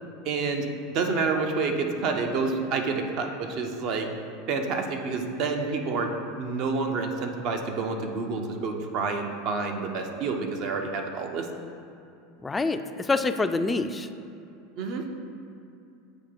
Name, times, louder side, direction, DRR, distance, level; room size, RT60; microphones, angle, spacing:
voice 1, 0.2-4.1 4.5-11.5 14.8-15.1, right 4 dB, 50° right, 4 dB, 0.7 m, -28 dB
voice 2, 12.4-14.1, left 3 dB, 15° left, 9 dB, 0.3 m, -26 dB
8.2 x 2.9 x 5.0 m, 2.7 s
figure-of-eight pair, 80°, 0 cm